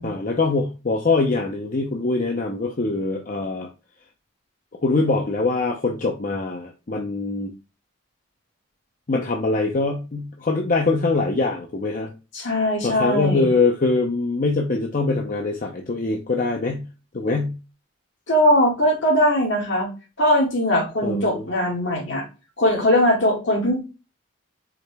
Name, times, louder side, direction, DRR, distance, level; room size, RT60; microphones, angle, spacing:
voice 1, 0.0-3.7 4.8-7.5 9.1-12.1 12.8-16.9 17.1-17.6 21.0-21.4, left 3 dB, 40° left, 2 dB, 0.6 m, -23 dB
voice 2, 12.3-13.5 18.3-19.9 20.2-22.3 22.6-23.8, equal, 65° left, 0 dB, 2.0 m, -20 dB
4.8 x 3.3 x 3.3 m, 0.30 s
head